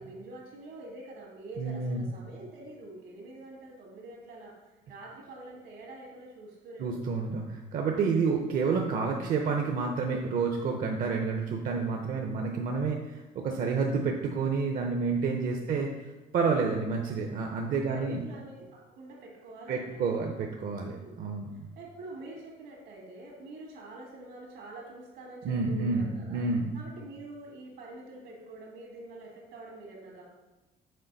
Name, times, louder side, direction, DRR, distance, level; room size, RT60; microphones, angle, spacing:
voice 1, 0.0-7.2 8.0-8.3 15.4-15.8 17.5-20.1 20.9-21.2 21.7-26.4 26.7-30.2, right 2 dB, 85° right, -1 dB, 2.0 m, -46 dB
voice 2, 1.6-2.0 6.8-15.9 16.3-18.2 19.7-21.5 25.4-26.7, right 4 dB, 55° right, 2 dB, 0.6 m, -29 dB
6.5 x 4.1 x 4.0 m, 1.1 s
cardioid pair, 110°, 17 cm